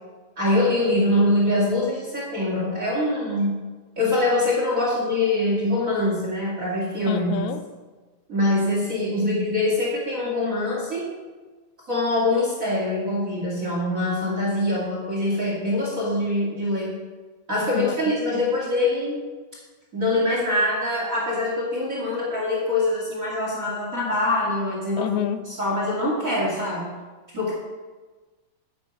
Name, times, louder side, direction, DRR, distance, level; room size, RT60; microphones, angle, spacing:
voice 1, 0.4-3.6 4.0-7.5 8.3-11.2 11.9-17.0 17.5-19.2 19.9-25.1 25.4-26.9 27.3-27.5, left 1 dB, 30° right, -4 dB, 1.8 m, -24 dB
voice 2, 7.1-7.6 17.8-18.0 25.0-25.4, left 10 dB, 90° left, 10 dB, 2.7 m, -27 dB
9.7 x 9.4 x 5.2 m, 1.3 s
omnidirectional pair, 4.4 m